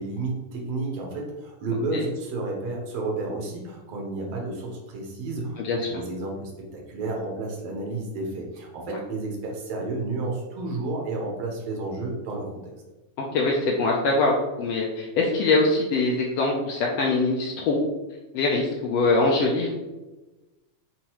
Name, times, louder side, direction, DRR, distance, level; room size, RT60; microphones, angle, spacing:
voice 1, 0.0-12.5, right 2 dB, 65° right, -1 dB, 1.7 m, -31 dB
voice 2, 5.6-5.9 8.9-9.0 13.3-17.8 18.3-19.7, left 3 dB, 90° left, -1 dB, 1.4 m, -23 dB
5.5 x 2.9 x 2.9 m, 1.1 s
omnidirectional pair, 3.4 m